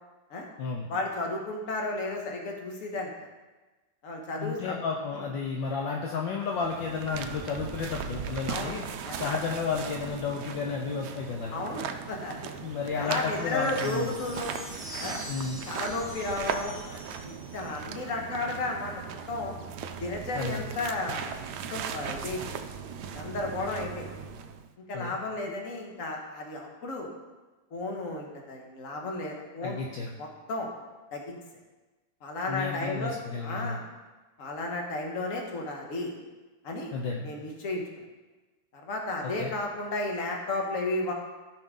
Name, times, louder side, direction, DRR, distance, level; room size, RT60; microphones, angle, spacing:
voice 1, 0.9-3.1 4.0-4.8 5.1-5.3 8.5-8.8 9.0-9.2 11.5-12.3 13.0-14.5 15.0-15.2 15.7-19.5 20.0-21.3 21.7-22.6 23.1-24.1 24.9-27.1 27.7-29.8 30.2-30.7 31.1-31.4 32.2-33.1 33.4-33.8 34.4-36.1 36.6-36.9 37.2-37.8 38.7-41.1, left 2 dB, 40° left, 1 dB, 1.5 m, -33 dB
voice 2, 4.4-8.8 9.2-11.6 12.6-14.1 15.3-15.6 20.3-20.7 24.9-25.2 29.6-30.1 32.5-33.8 36.9-37.3 39.4-39.6, left 5 dB, 65° left, 0 dB, 1.4 m, -32 dB
sound 1, 6.4-24.7, right 7 dB, 75° right, 0.9 m, -38 dB
sound 2, 13.3-18.0, equal, 5° left, 1.9 m, -44 dB
15.0 x 5.5 x 3.7 m, 1.2 s
omnidirectional pair, 2.4 m